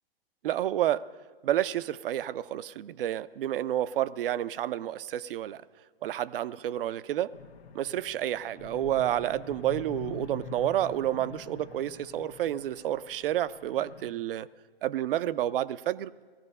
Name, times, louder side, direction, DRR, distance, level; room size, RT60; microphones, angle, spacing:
voice 1, 0.4-1.0 1.4-5.6 6.0-7.3 7.7-14.5 14.8-16.1, right 12 dB, 60° right, 16 dB, 0.5 m, -30 dB
sound 1, 7.3-14.1, left 5 dB, 80° left, 1.3 m, -45 dB
18.5 x 14.0 x 5.4 m, 1.5 s
hypercardioid pair, 120°, 31 cm